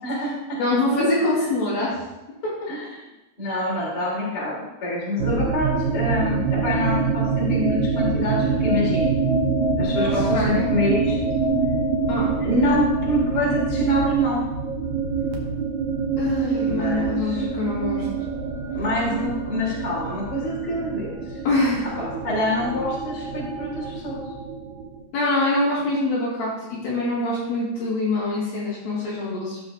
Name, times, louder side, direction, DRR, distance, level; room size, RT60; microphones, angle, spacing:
voice 1, 0.0-0.6 1.4-1.5 2.7-3.0 3.4-9.2 9.8-11.2 12.3-14.5 16.7-17.4 18.7-21.2 22.0-24.2, left 1 dB, 25° left, -7 dB, 3.6 m, -26 dB
voice 2, 0.6-2.0 10.0-10.7 12.1-12.4 16.2-18.1 21.4-21.9 25.1-29.6, left 2 dB, 65° left, -8 dB, 4.2 m, -24 dB
sound 1, 5.2-25.0, right 4 dB, 65° right, 2.0 m, -25 dB
15.0 x 6.5 x 2.7 m, 1.0 s
omnidirectional pair, 4.6 m